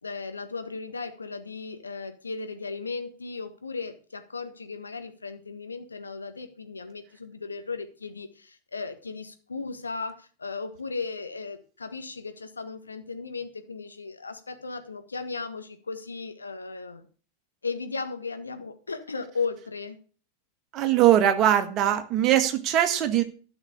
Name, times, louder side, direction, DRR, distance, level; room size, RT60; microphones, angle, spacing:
voice 1, 0.0-17.1 17.6-20.0, left 4 dB, 75° left, 7 dB, 1.5 m, -36 dB
voice 2, 20.7-23.2, right 11 dB, 35° right, 8 dB, 1.5 m, -21 dB
13.0 x 6.0 x 6.9 m, 0.40 s
figure-of-eight pair, 90°, 0 cm